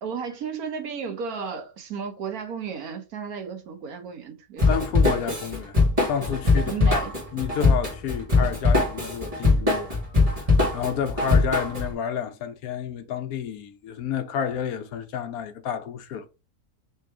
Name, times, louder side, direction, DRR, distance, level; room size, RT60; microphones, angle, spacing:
voice 1, 0.0-4.9 6.7-7.1, right 6 dB, 70° right, 1.2 m, -34 dB
Drum kit / Drum, 4.6-11.9, left 3 dB, 25° right, 1.5 m, -21 dB
voice 2, 4.7-7.0 7.3-10.0 10.4-16.3, left 8 dB, 70° left, 1.1 m, -30 dB
3.4 x 3.1 x 4.6 m
omnidirectional pair, 1.6 m